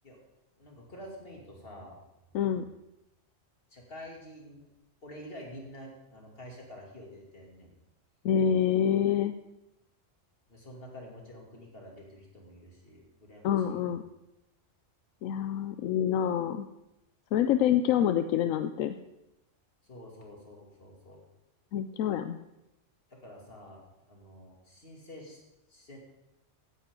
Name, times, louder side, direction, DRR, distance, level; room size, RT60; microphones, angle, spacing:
voice 1, 0.6-2.0 3.7-4.7 5.0-7.7 10.5-13.8 19.8-21.2 23.1-25.4 25.7-26.0, equal, 45° left, -1 dB, 2.8 m, -48 dB
voice 2, 2.3-2.7 8.2-9.3 13.4-14.0 15.2-16.7 17.3-19.0 21.7-22.4, left 9 dB, 90° left, 9 dB, 1.0 m, -26 dB
16.0 x 9.5 x 3.8 m, 0.92 s
omnidirectional pair, 1.3 m